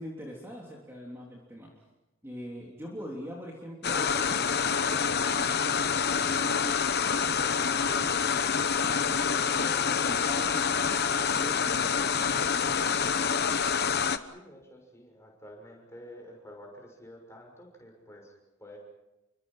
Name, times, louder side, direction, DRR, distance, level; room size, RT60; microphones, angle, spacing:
voice 1, 0.0-1.7 2.2-6.8 7.2-13.3, equal, 10° right, -3 dB, 3.3 m, -44 dB
sound 1, 3.8-14.2, left 6 dB, 45° left, 1.0 m, -27 dB
voice 2, 14.2-18.8, equal, 15° left, 0 dB, 6.7 m, -49 dB
30.0 x 24.5 x 5.7 m, 0.98 s
head